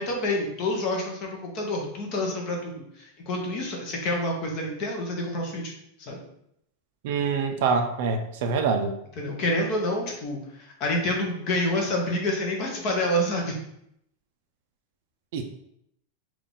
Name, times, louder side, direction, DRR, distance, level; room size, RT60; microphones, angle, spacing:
voice 1, 0.0-5.7 6.0-6.2 9.2-13.5, left 1 dB, 30° left, 0 dB, 0.8 m, -28 dB
voice 2, 7.0-8.9 15.3-15.4, right 5 dB, 50° right, 6 dB, 0.4 m, -25 dB
3.7 x 2.4 x 3.8 m, 0.75 s
supercardioid pair, 180°, 0 cm